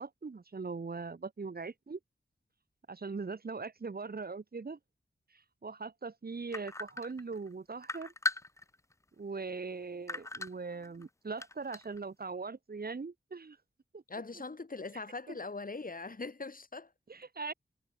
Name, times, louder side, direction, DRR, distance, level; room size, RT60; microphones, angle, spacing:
voice 1, 0.0-2.0 2.9-4.8 5.6-8.1 9.2-13.6 13.9-14.0 17.1-17.5, right 4 dB, 55° right, 2.0 m, -40 dB
sound 1, 6.5-7.5 7.8-8.9 9.4-9.5 10.1-11.0 11.4-12.0, left 2 dB, 15° left, 0.5 m, -37 dB
voice 2, 14.1-16.9, left 3 dB, 50° left, 5.5 m, -41 dB
wide cardioid pair, 80°, 19 cm